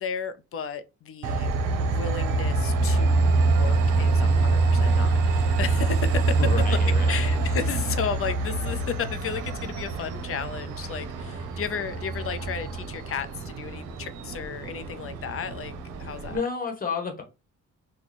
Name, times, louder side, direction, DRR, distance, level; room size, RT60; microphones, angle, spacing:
voice 1, 0.0-1.5 1.8-6.8 7.1-15.7 16.0-16.4, left 6 dB, 45° left, 0.5 m, -33 dB
Train, 1.2-16.4, right 3 dB, 85° right, 0.7 m, -25 dB
voice 2, 6.4-7.2 16.3-17.2, left 5 dB, 30° left, 1.1 m, -30 dB
3.0 x 2.2 x 4.0 m
cardioid pair, 90°, 30 cm